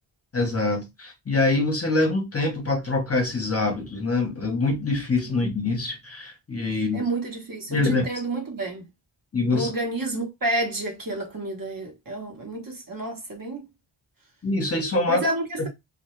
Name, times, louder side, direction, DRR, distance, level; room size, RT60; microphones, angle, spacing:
voice 1, 0.3-7.0 7.7-8.0 9.3-9.7 14.4-15.3 15.6-15.7, left 2 dB, 30° left, 0.7 m, -24 dB
voice 2, 6.9-8.9 9.5-13.7 15.1-15.7, right 2 dB, 45° right, 0.9 m, -30 dB
2.2 x 2.0 x 3.0 m
wide cardioid pair, 85°, 49 cm